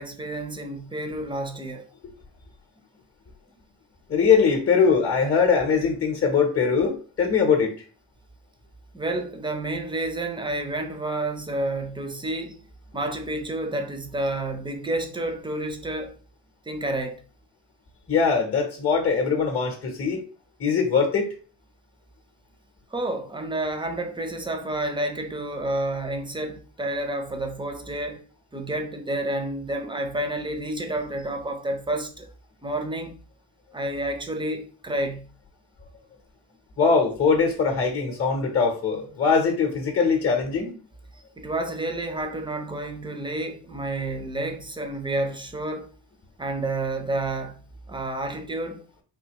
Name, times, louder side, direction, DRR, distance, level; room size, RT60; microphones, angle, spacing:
voice 1, 0.0-1.9 8.9-12.6 12.9-16.2 16.7-17.2 22.9-28.2 28.5-32.3 32.6-33.2 33.7-35.3 41.4-45.9 46.4-47.6 47.9-48.9, right 1 dB, 10° right, 0.7 m, -30 dB
voice 2, 4.1-7.8 18.1-20.2 20.6-21.3 36.8-40.8, left 5 dB, 30° left, 0.9 m, -21 dB
3.7 x 2.7 x 2.9 m
cardioid pair, 70°, 48 cm